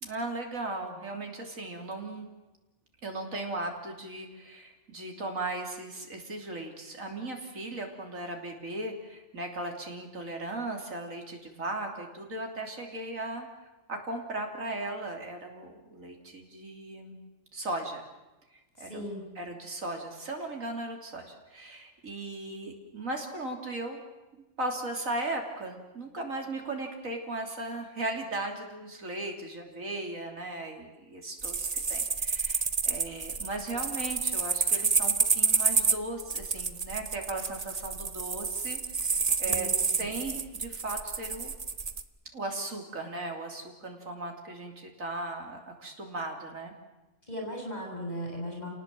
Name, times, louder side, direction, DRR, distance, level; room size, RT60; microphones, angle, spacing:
voice 1, 0.0-2.3 3.0-13.5 13.9-17.2 17.5-18.0 18.8-19.1 19.4-24.0 24.3-41.5 42.3-46.7, right 2 dB, 90° right, 2 dB, 3.6 m, -37 dB
voice 2, 18.8-19.3 39.4-40.1 47.3-48.7, equal, 30° left, 0 dB, 7.0 m, -38 dB
sound 1, 31.4-42.0, right 5 dB, 35° right, 1.0 m, -29 dB
29.5 x 18.5 x 7.7 m, 1.1 s
omnidirectional pair, 1.4 m